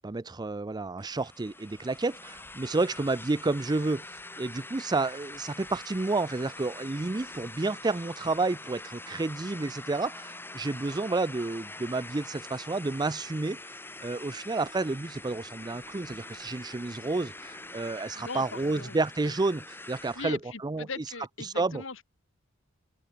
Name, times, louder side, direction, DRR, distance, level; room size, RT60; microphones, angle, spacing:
voice 1, 0.0-4.0 4.4-13.6 14.0-20.9 21.4-21.8, right 3 dB, 20° right, 0.5 m, -30 dB
sound 1, 1.0-20.3, left 2 dB, 10° left, 2.0 m, -44 dB
voice 2, 18.1-19.0 20.1-22.1, left 4 dB, 70° left, 2.4 m, -40 dB
head